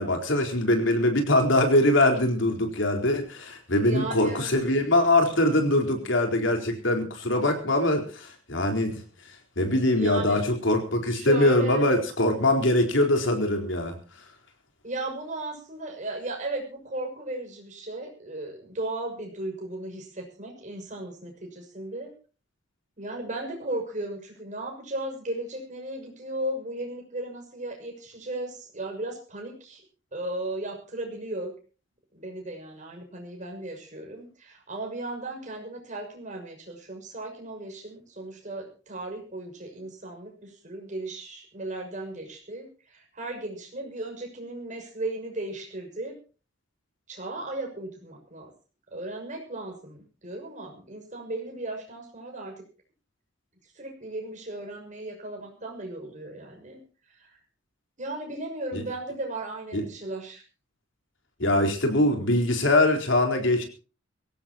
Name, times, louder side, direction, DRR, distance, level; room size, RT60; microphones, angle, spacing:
voice 1, 0.0-9.0 9.6-14.0 58.7-58.8 59.7-59.8 61.4-63.6, left 1 dB, 70° left, 4 dB, 4.3 m, -23 dB
voice 2, 3.8-4.5 10.0-10.4 11.1-11.9 14.8-22.1 23.0-29.8 30.1-31.5 32.1-46.2 47.1-48.5 48.9-52.6 53.7-56.8 57.1-57.4 58.0-60.4, right 2 dB, 40° right, 2 dB, 6.4 m, -36 dB
23.0 x 17.0 x 2.9 m, 0.35 s
head